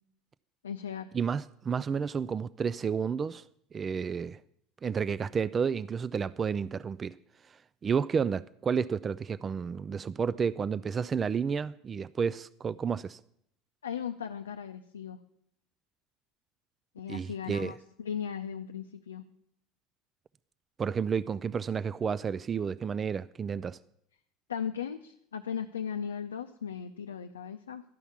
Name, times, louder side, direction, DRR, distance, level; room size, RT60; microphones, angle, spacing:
voice 1, 0.6-1.1 13.8-15.2 16.9-19.2 24.5-27.8, left 8 dB, 85° left, 0.5 m, -37 dB
voice 2, 1.1-3.4 3.7-4.4 4.8-7.1 7.8-13.2 17.1-17.7 20.8-23.8, right 6 dB, 30° right, 0.3 m, -31 dB
12.0 x 5.7 x 8.3 m
hypercardioid pair, 75°, 0 cm